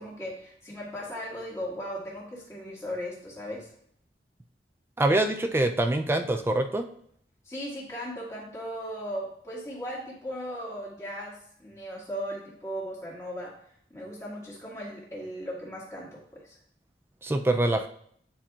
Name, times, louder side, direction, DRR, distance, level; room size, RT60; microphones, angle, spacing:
voice 1, 0.0-3.7 7.4-13.6 13.9-16.6, equal, 15° left, -5 dB, 1.9 m, -37 dB
voice 2, 5.0-6.9 17.2-17.9, right 1 dB, 15° right, 6 dB, 0.3 m, -24 dB
9.8 x 4.4 x 2.4 m, 0.65 s
head